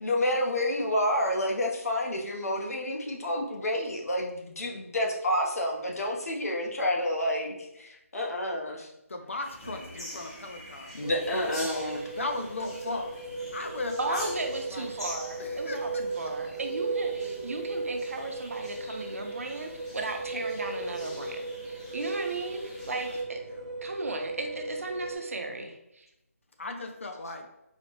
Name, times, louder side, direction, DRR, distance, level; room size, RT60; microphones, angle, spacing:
voice 1, 0.0-8.9 10.9-12.0, left 1 dB, 75° left, 0 dB, 0.8 m, -29 dB
voice 2, 9.1-11.9 12.2-14.3 14.7-14.9 15.4-16.3 23.5-23.6 26.6-27.5, left 2 dB, 55° left, 5 dB, 0.5 m, -37 dB
sound 1, 9.4-23.2, left 1 dB, 25° left, 0.8 m, -43 dB
sound 2, 11.0-25.2, right 3 dB, 20° right, 0.3 m, -37 dB
voice 3, 14.0-23.4 23.8-26.1, right 3 dB, 65° right, 4 dB, 0.6 m, -36 dB
4.1 x 2.0 x 2.9 m, 0.87 s
hypercardioid pair, 175°, 8 cm